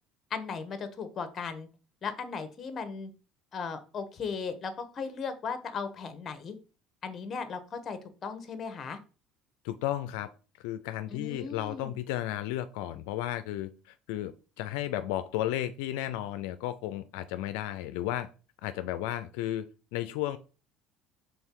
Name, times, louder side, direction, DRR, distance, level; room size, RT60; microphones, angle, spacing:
voice 1, 0.3-1.7 2.0-3.1 3.5-6.6 7.0-9.0 11.1-11.9, left 5 dB, 35° left, 1.2 m, -37 dB
voice 2, 9.6-10.3 10.6-18.3 18.6-20.4, left 13 dB, 80° left, 0.4 m, -33 dB
5.4 x 3.8 x 4.6 m
supercardioid pair, 95°, 0 cm